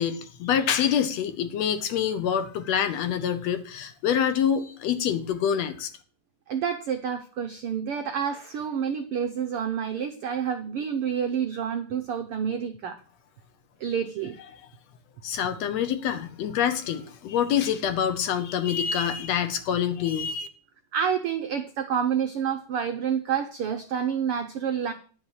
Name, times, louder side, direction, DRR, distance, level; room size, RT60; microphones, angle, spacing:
voice 1, 0.0-5.9 15.2-20.5, left 8 dB, 70° left, 10 dB, 1.8 m, -26 dB
voice 2, 6.5-13.0 13.8-14.4 20.9-24.9, right 7 dB, 90° right, 7 dB, 1.2 m, -28 dB
11.5 x 5.7 x 7.9 m, 0.41 s
omnidirectional pair, 3.6 m